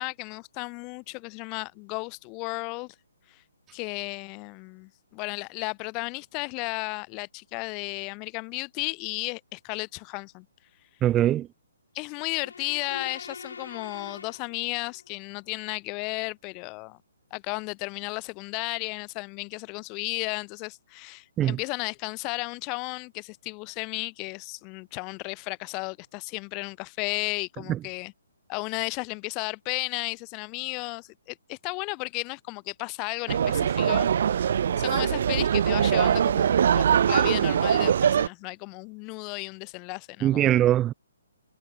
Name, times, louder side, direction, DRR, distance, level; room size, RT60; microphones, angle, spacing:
voice 1, 0.0-2.9 3.7-10.4 11.9-17.0 17.3-28.1 28.5-40.6, left 31 dB, 25° left, 4.7 m, -34 dB
voice 2, 11.0-11.5 21.4-21.6 27.7-27.8 40.2-40.9, right 12 dB, 15° right, 0.6 m, -22 dB
sound 1, 12.1-15.1, left 5 dB, 75° left, 5.6 m, -43 dB
sound 2, 33.3-38.3, right 8 dB, 55° right, 0.8 m, -22 dB
figure-of-eight pair, 140°, 0 cm